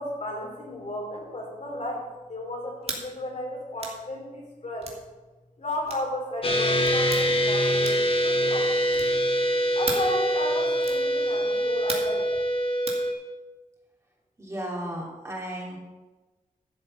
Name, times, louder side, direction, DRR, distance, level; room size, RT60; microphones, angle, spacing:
voice 1, 0.0-4.9 5.6-9.2 9.7-12.3, left 1 dB, 55° left, -2 dB, 4.2 m, -34 dB
sound 1, 2.8-3.1 3.8-4.0 4.8-5.0 5.9-6.1 6.8-7.2 7.8-8.2 8.9-9.2 9.9-10.1 10.8-11.1 11.9-12.2 12.9-13.0, right 3 dB, 45° right, 2.3 m, -35 dB
sound 2, 6.4-13.1, equal, 40° left, 1.8 m, -24 dB
voice 2, 14.4-15.8, right 1 dB, 20° right, -3 dB, 3.3 m, -34 dB
12.5 x 7.4 x 5.6 m, 1.2 s
wide cardioid pair, 85°, 14 cm